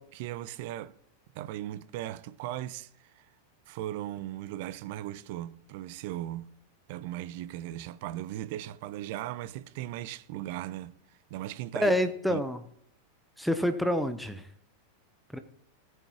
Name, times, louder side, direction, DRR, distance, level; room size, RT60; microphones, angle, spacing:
voice 1, 0.1-1.0 1.3-3.3 3.7-6.5 6.9-10.9 11.3-11.9 12.3-12.4, right 13 dB, 50° right, 0.6 m, -37 dB
voice 2, 11.8-12.6 13.4-14.5 15.3-15.4, equal, ahead, 0.9 m, -27 dB
18.5 x 9.1 x 3.1 m
figure-of-eight pair, 90°, 0 cm